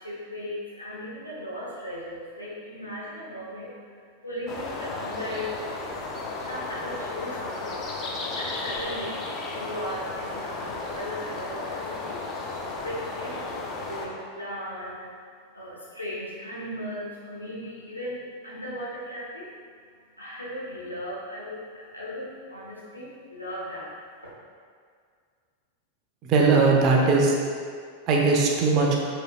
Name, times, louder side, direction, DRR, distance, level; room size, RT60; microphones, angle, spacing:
voice 1, 0.0-5.6 6.4-15.3 15.5-19.8 20.1-24.2, equal, 85° left, -7 dB, 1.1 m, -37 dB
sound 1, 4.5-14.1, left 3 dB, 30° left, 0.6 m, -34 dB
voice 2, 26.2-27.4 28.1-29.0, right 4 dB, 35° right, -1 dB, 0.7 m, -19 dB
4.9 x 4.2 x 2.4 m, 2.1 s
figure-of-eight pair, 90°, 0 cm